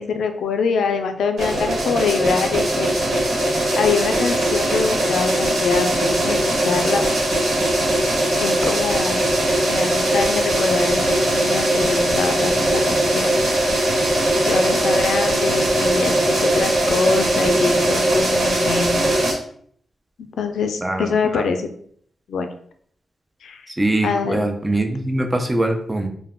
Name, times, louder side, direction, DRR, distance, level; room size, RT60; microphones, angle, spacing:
voice 1, 0.0-2.9 3.7-7.0 8.4-9.2 9.6-13.3 14.3-19.0 20.2-21.7 22.3-22.5 23.4-23.6 24.0-24.4, left 5 dB, 90° left, 6 dB, 0.3 m, -24 dB
sound 1, 1.4-19.3, right 1 dB, 70° right, 1.1 m, -20 dB
voice 2, 20.8-21.4 23.7-26.1, right 1 dB, 15° right, 5 dB, 0.4 m, -22 dB
2.2 x 2.1 x 3.5 m, 0.62 s
wide cardioid pair, 105°, 0 cm